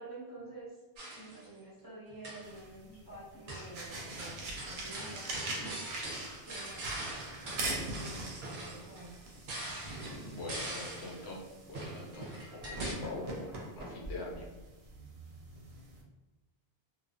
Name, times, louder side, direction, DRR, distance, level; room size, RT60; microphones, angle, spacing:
voice 1, 0.0-5.8 6.4-6.9 7.4-9.2, right 2 dB, 20° right, -10 dB, 0.7 m, -49 dB
sound 1, 1.0-1.5 2.1-2.6 3.5-3.8 4.2-11.3 11.7-12.9, right 1 dB, 55° right, 0.7 m, -43 dB
sound 2, 2.4-16.0, right 2 dB, 85° right, 0.8 m, -43 dB
voice 2, 10.3-11.4 11.7-13.5 13.8-14.4, left 2 dB, 85° left, -3 dB, 0.9 m, -43 dB
2.5 x 2.2 x 2.3 m, 1.1 s
omnidirectional pair, 1.1 m